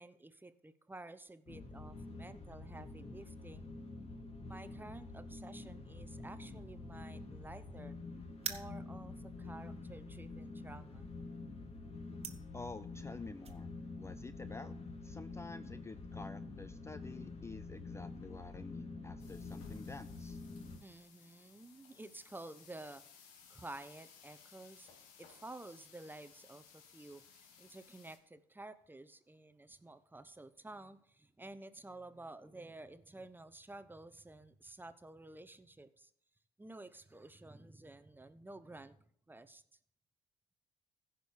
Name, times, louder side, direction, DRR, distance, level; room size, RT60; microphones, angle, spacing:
voice 1, 0.0-3.7 4.5-8.0 8.4-11.1 20.8-23.0 23.5-24.9 25.2-36.1 36.6-39.0 39.3-39.6, right 2 dB, 15° right, 12 dB, 1.0 m, -52 dB
sound 1, 1.5-20.8, left 3 dB, 45° left, 2.2 m, -47 dB
sound 2, 8.3-13.6, right 6 dB, 45° right, 1.6 m, -47 dB
voice 2, 12.5-13.7 14.0-14.7 15.0-20.4, left 3 dB, 20° left, 13 dB, 0.5 m, -49 dB
sound 3, 19.2-28.2, left 6 dB, 80° left, 1.6 m, -60 dB
15.0 x 5.3 x 6.7 m, 0.63 s
hypercardioid pair, 55°, 15 cm